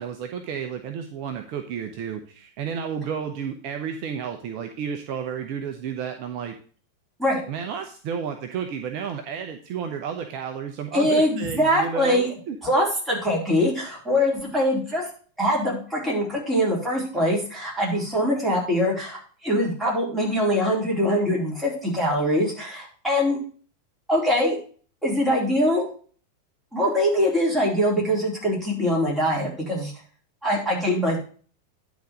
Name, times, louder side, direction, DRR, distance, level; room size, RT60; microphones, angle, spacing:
voice 1, 0.0-6.6 7.5-12.6, right 7 dB, 45° right, 5 dB, 0.8 m, -32 dB
voice 2, 10.9-12.3 12.6-15.1 15.4-23.4 24.1-24.6 25.0-25.9 26.7-29.9 30.4-31.2, equal, 5° right, -5 dB, 4.0 m, -23 dB
10.5 x 4.1 x 6.1 m, 0.42 s
figure-of-eight pair, 90°, 0 cm